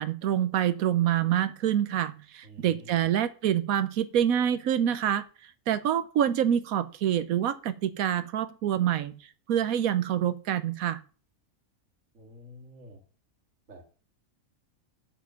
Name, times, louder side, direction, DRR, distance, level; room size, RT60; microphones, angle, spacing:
voice 1, 0.0-5.2 5.7-9.1 9.5-11.0, right 10 dB, 90° right, 14 dB, 1.2 m, -26 dB
voice 2, 2.4-3.0 12.1-13.0 13.7-13.9, right 1 dB, 65° right, 2 dB, 2.4 m, -49 dB
7.3 x 7.3 x 5.6 m, 0.38 s
omnidirectional pair, 1.4 m